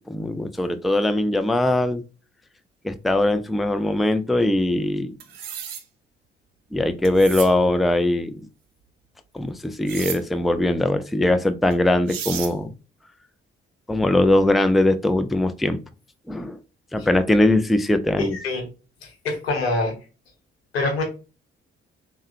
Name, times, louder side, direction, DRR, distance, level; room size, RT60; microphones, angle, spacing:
voice 1, 0.1-2.0 2.8-5.1 6.7-8.5 9.3-12.7 13.9-15.8 16.3-16.6 16.9-18.4, left 1 dB, ahead, 0.4 m, -21 dB
sound 1, 5.2-5.8 7.1-7.5 9.9-10.2 11.7-11.8 12.1-12.5, right 8 dB, 85° right, 0.5 m, -32 dB
voice 2, 18.2-18.6 19.0-19.9 20.7-21.0, left 2 dB, 90° left, 0.8 m, -25 dB
3.5 x 2.1 x 2.6 m
hypercardioid pair, 40°, 30 cm